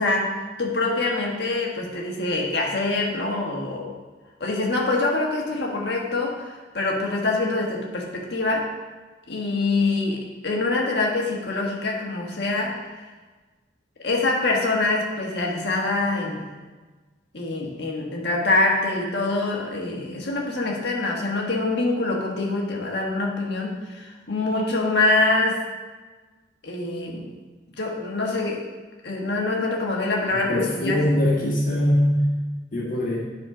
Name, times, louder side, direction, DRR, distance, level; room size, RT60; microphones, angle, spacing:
voice 1, 0.0-3.9 4.4-8.7 9.3-12.8 14.0-16.5 17.3-25.6 26.6-27.3 27.8-28.7 29.0-31.0, left 2 dB, 60° left, -1 dB, 1.5 m, -25 dB
voice 2, 30.3-32.2 32.7-33.2, left 1 dB, 45° left, -4 dB, 1.6 m, -22 dB
10.5 x 4.2 x 4.9 m, 1.3 s
head